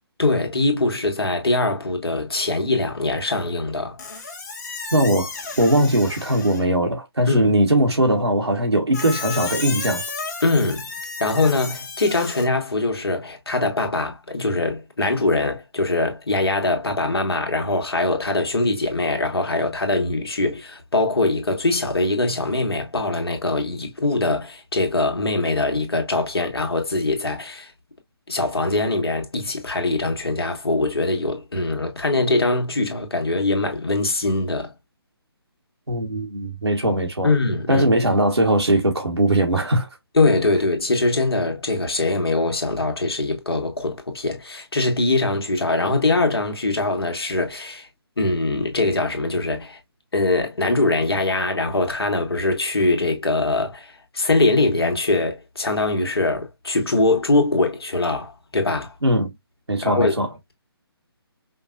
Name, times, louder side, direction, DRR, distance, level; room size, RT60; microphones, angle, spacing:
voice 1, 0.2-4.0 7.3-7.5 10.4-10.9 11.2-27.7 28.3-34.7 37.2-37.9 40.1-47.9 48.2-49.8 50.1-58.9 59.8-60.5, left 2 dB, 70° left, 1.4 m, -22 dB
Squeak, 4.0-6.7 8.9-12.4, left 4 dB, 40° left, 1.4 m, -33 dB
voice 2, 4.9-5.3 5.6-10.0 35.9-37.3 37.7-39.9 59.0-59.3 59.7-60.3, right 1 dB, 90° right, 1.2 m, -20 dB
5.2 x 2.3 x 2.4 m
figure-of-eight pair, 145°, 13 cm